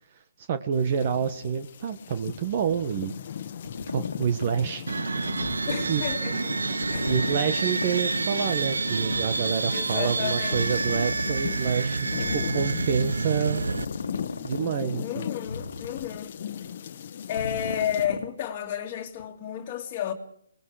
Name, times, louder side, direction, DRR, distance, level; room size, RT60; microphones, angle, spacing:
voice 1, 0.4-3.1 3.9-4.9 5.9-6.0 7.1-13.6 14.4-15.2, right 7 dB, 40° right, 1.3 m, -28 dB
sound 1, 0.7-18.1, left 8 dB, 45° left, 1.3 m, -38 dB
sound 2, 1.0-1.4 2.1-2.9 3.6-4.5 5.4-6.2 6.6-8.1 8.6-8.7 9.1-9.7 10.5-11.4 11.9-12.8 13.6-14.6 15.2-16.2 17.4-18.3 19.2-19.3, left 3 dB, 90° left, 1.7 m, -37 dB
sound 3, 4.9-13.8, right 3 dB, 85° right, 0.9 m, -28 dB
voice 2, 5.7-6.6 6.9-7.1 9.7-11.0 15.0-16.3 17.3-20.1, left 10 dB, 25° left, 2.1 m, -32 dB
26.5 x 20.0 x 4.9 m
hypercardioid pair, 155°, 0 cm